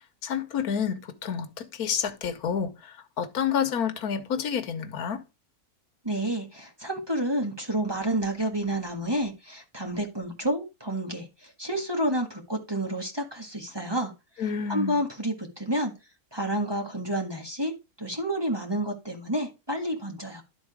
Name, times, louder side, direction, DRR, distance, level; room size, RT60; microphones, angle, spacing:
voice 1, 0.2-5.2 14.4-15.0, left 7 dB, 80° left, 1.4 m, -29 dB
voice 2, 6.0-11.3 11.6-14.1 14.7-15.9 16.3-17.7 18.0-20.4, right 1 dB, 15° right, 1.5 m, -29 dB
11.5 x 3.9 x 4.9 m
omnidirectional pair, 1.6 m